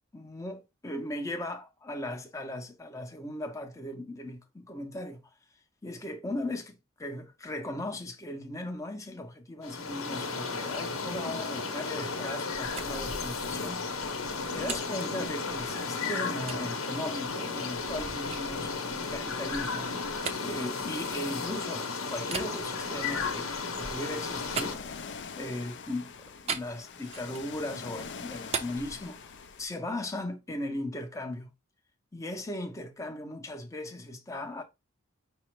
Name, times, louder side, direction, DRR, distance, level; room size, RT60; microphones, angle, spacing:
voice 1, 0.1-5.2 5.8-20.0 20.4-24.8 25.4-29.3 29.6-31.5 32.1-34.6, left 1 dB, 15° left, 0.7 m, -38 dB
sound 1, 9.6-24.8, left 4 dB, 80° left, 0.9 m, -34 dB
sound 2, 12.5-15.8 16.5-16.7 17.2-21.6 22.2-25.5 26.5-27.6 27.9-29.7, right 5 dB, 30° right, 0.5 m, -41 dB
Ocean, 23.8-29.6, left 6 dB, 60° left, 0.5 m, -44 dB
5.3 x 2.0 x 4.5 m
head